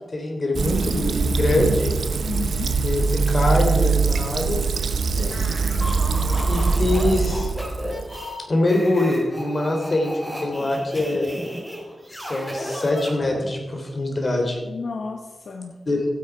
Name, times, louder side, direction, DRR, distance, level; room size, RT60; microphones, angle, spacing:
voice 1, 0.1-1.9 2.8-4.6 6.5-7.5 8.5-11.3 12.1-14.6 15.9-16.1, left 1 dB, 45° left, 2 dB, 3.4 m, -23 dB
Fill (with liquid), 0.5-8.2, right 4 dB, 80° right, 0.8 m, -22 dB
voice 2, 2.2-2.7 5.1-5.6 14.6-15.7, left 4 dB, 75° left, 4 dB, 0.9 m, -33 dB
sound 1, 5.2-13.5, equal, 10° left, 4.3 m, -34 dB
15.0 x 8.7 x 4.7 m, 1.3 s
cardioid pair, 50°, 0 cm